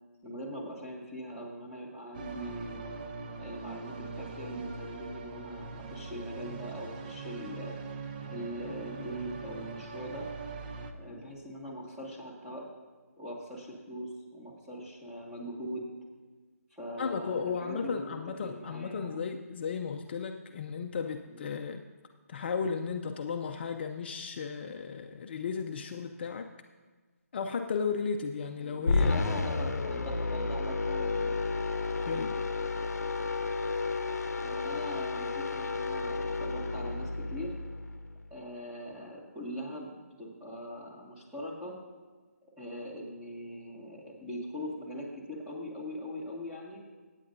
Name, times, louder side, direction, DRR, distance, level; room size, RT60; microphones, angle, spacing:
voice 1, 0.2-2.9 3.4-7.7 8.3-10.3 10.9-12.7 13.2-15.9 16.7-18.2 18.4-19.2 21.2-21.4 28.6-31.4 34.4-37.5 38.3-41.7 42.6-46.8, equal, 10° right, -5 dB, 2.0 m, -41 dB
sound 1, 2.1-10.9, right 4 dB, 35° right, 0.7 m, -42 dB
voice 2, 17.0-21.8 22.3-26.5 27.3-29.2 32.0-32.4, left 6 dB, 40° left, 5 dB, 0.5 m, -35 dB
sound 2, 28.9-38.2, left 3 dB, 80° left, 0.7 m, -31 dB
21.0 x 9.0 x 2.7 m, 1.3 s
figure-of-eight pair, 155°, 9 cm